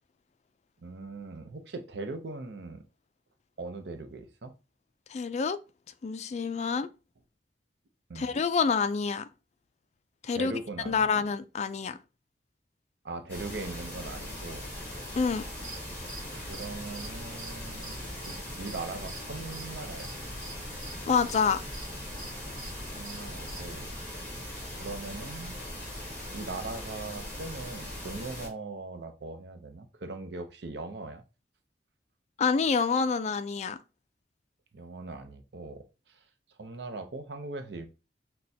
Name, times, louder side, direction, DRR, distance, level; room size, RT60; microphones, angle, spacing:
voice 1, 0.8-2.8 3.6-4.5 8.1-8.3 10.3-11.1 13.0-14.7 16.3-18.0 18.3-20.1 23.0-24.5 24.8-25.5 26.3-31.2 34.7-36.2 36.6-37.9, right 3 dB, 70° right, 0.6 m, -40 dB
voice 2, 5.1-5.6 6.0-6.9 8.2-9.3 10.2-10.5 10.9-12.0 15.2-15.4 21.1-21.6 32.4-33.8, left 5 dB, 40° left, 0.3 m, -27 dB
sound 1, 13.3-28.5, left 1 dB, 10° left, 1.4 m, -40 dB
sound 2, 15.4-23.8, right 2 dB, 45° right, 1.2 m, -47 dB
6.2 x 2.2 x 2.7 m
head